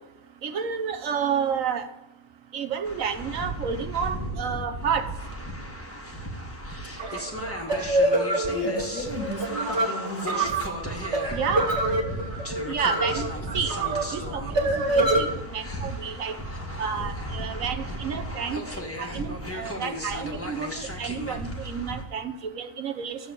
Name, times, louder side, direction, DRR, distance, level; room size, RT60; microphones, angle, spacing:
voice 1, 0.4-1.9 2.5-5.1 11.3-11.7 12.7-13.3 13.5-13.7 14.1-14.4 14.9-15.3 15.5-16.4 16.8-23.2, right 7 dB, 65° right, 1.4 m, -30 dB
sound 1, 2.8-22.0, equal, 10° left, 1.5 m, -35 dB
sound 2, 7.0-15.2, right 2 dB, 50° right, 2.3 m, -26 dB
voice 2, 8.4-10.7, left 1 dB, 85° left, 2.5 m, -34 dB
13.5 x 7.0 x 8.2 m
omnidirectional pair, 1.5 m